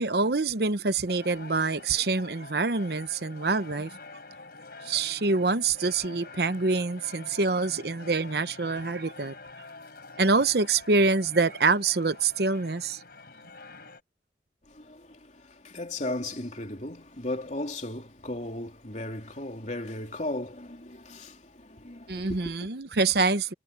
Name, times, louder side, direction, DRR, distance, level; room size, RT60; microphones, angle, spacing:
voice 1, 0.0-3.9 4.8-9.3 10.2-13.0 22.1-23.5, right 3 dB, 60° right, 0.9 m, -26 dB
sound 1, 1.1-14.0, left 3 dB, 55° left, 4.1 m, -47 dB
voice 2, 14.7-22.6, left 1 dB, 40° left, 3.5 m, -36 dB
head